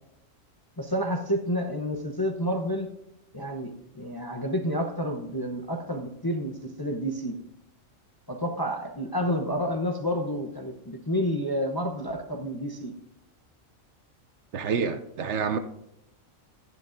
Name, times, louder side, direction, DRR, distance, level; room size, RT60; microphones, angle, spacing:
voice 1, 0.8-2.9 3.3-7.4 8.3-12.9, equal, 25° left, 0.6 m, -29 dB
voice 2, 14.5-15.6, right 6 dB, 65° right, 0.9 m, -28 dB
13.0 x 11.0 x 2.6 m
omnidirectional pair, 1.4 m